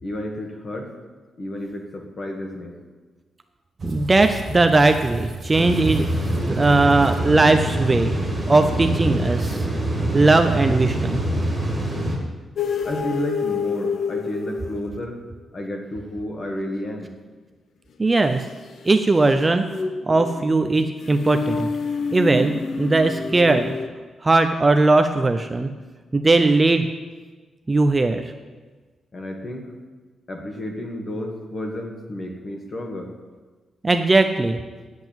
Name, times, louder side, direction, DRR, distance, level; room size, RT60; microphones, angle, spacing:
voice 1, 0.0-0.9 1.4-2.8 12.8-15.2 15.5-17.1 29.1-29.7 30.3-33.1, left 1 dB, 30° left, 3 dB, 1.6 m, -31 dB
voice 2, 3.8-6.1 6.5-8.1 8.5-9.6 10.1-11.2 18.0-18.4 18.9-19.6 20.1-21.7 22.1-23.8 24.2-25.7 26.1-26.9 27.7-28.2 33.8-34.6, right 3 dB, 20° right, 7 dB, 0.5 m, -18 dB
sound 1, 3.8-10.0, right 1 dB, 35° right, 1.4 m, -36 dB
sound 2, 5.5-12.2, right 1 dB, 5° left, 2.2 m, -25 dB
sound 3, 12.6-15.2 18.7-23.9, left 5 dB, 55° left, 0.8 m, -28 dB
9.1 x 7.9 x 9.2 m, 1.3 s
wide cardioid pair, 180°, 0 cm